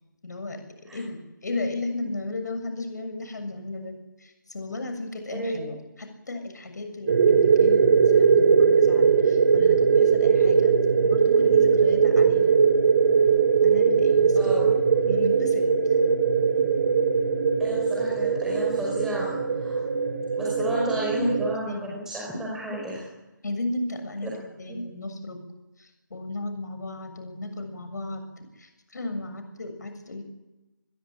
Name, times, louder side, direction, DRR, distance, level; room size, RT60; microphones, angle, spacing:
voice 1, 0.2-0.6 0.9-10.7 11.0-12.6 13.6-14.5 15.1-15.7 20.7-20.8 21.1-22.0 23.4-25.4 25.8-30.2, left 2 dB, 60° left, 7 dB, 7.0 m, -35 dB
voice 2, 5.3-5.7 14.4-14.7 17.6-19.8 20.4-23.0 24.2-24.3 24.7-24.8, right 1 dB, 5° right, -4 dB, 5.3 m, -32 dB
sound 1, 7.1-21.5, right 6 dB, 40° right, 2.7 m, -20 dB
28.0 x 21.5 x 9.0 m, 1.0 s
figure-of-eight pair, 155°, 11 cm